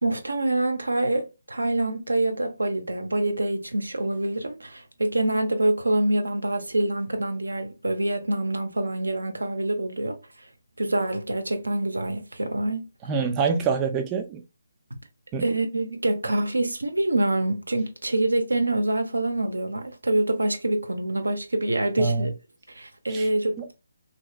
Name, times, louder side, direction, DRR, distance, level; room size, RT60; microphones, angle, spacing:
voice 1, 0.0-10.5 10.8-12.9 15.4-22.3 22.7-23.7, right 1 dB, 80° right, 0.5 m, -26 dB
voice 2, 13.1-14.4 15.3-15.4 22.0-22.3 23.1-23.3 23.6-23.7, right 5 dB, 20° right, 0.3 m, -25 dB
2.7 x 2.0 x 2.3 m
figure-of-eight pair, 145°, 0 cm